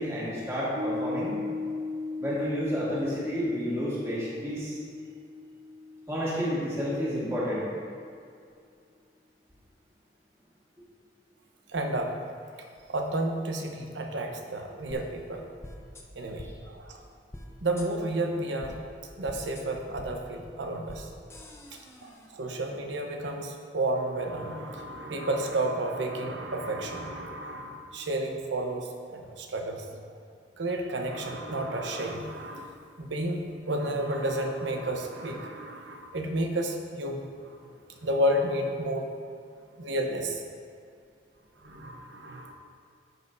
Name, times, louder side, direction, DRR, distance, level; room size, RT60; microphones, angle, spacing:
voice 1, 0.0-1.4 2.2-4.8 6.1-7.7 16.4-16.5, equal, 15° right, -8 dB, 1.8 m, -30 dB
Piano, 0.8-7.5, left 2 dB, 45° right, 0.5 m, -37 dB
voice 2, 11.7-12.2 12.9-15.5 16.1-17.0 17.6-18.8 19.2-21.1 21.7-30.0 30.6-39.1 39.8-40.4 41.6-42.5, right 1 dB, 85° right, 3 dB, 0.9 m, -31 dB
sound 1, 14.9-15.0 15.6-16.0 16.4-16.5 17.3-17.4 17.8-17.9 18.6-18.7 19.3-19.6 20.0-20.1 20.9-21.0 21.3-22.3, left 1 dB, 15° left, 0.6 m, -44 dB
13.5 x 5.4 x 2.6 m, 2.3 s
head